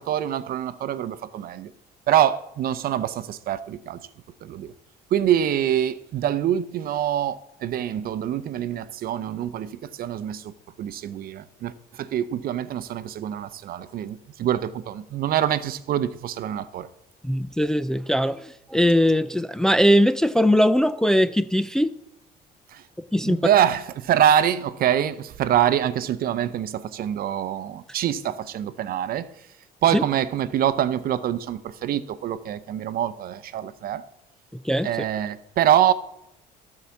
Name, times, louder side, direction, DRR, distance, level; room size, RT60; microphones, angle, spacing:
voice 1, 0.0-1.7 2.1-4.0 4.4-4.7 5.1-10.5 10.8-16.9 22.7-22.8 23.2-29.3 29.8-34.0 34.8-35.9, right 10 dB, 60° right, 0.7 m, -25 dB
voice 2, 17.2-21.9 23.1-23.4 29.9-30.0 34.6-34.9, equal, 5° left, 0.3 m, -20 dB
14.0 x 4.8 x 7.0 m
cardioid pair, 110°, 17 cm